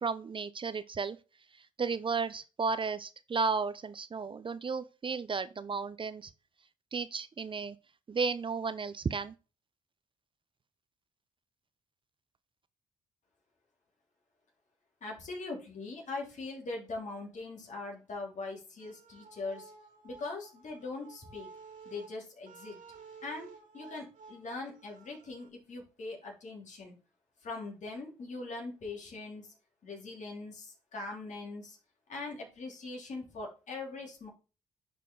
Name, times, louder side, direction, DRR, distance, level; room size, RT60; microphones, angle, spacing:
voice 1, 0.0-1.2 1.8-6.3 6.9-7.8 8.1-9.3, right 5 dB, 35° right, 0.6 m, -33 dB
voice 2, 15.0-19.7 20.0-21.5 21.8-22.8 23.2-26.9 27.4-29.5 29.8-31.8 32.1-34.3, left 3 dB, 55° left, 3.1 m, -41 dB
sound 1, 18.8-25.5, right 5 dB, 65° right, 2.7 m, -53 dB
10.0 x 4.5 x 3.8 m
supercardioid pair, 55°, 15 cm